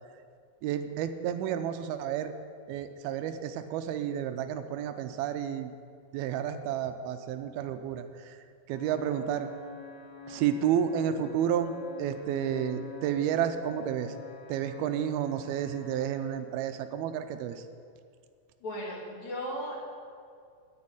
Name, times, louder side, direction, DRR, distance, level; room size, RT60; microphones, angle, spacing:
voice 1, 0.6-2.3 2.7-5.7 6.1-8.4 8.7-9.5 10.3-11.7 12.0-14.1 14.5-17.6, right 9 dB, 85° right, 9 dB, 2.5 m, -31 dB
sound 1, 8.7-16.2, left 2 dB, 15° left, 1.9 m, -46 dB
voice 2, 18.6-19.8, equal, 50° left, -3 dB, 3.3 m, -36 dB
9.7 x 9.6 x 8.7 m, 2.2 s
omnidirectional pair, 4.4 m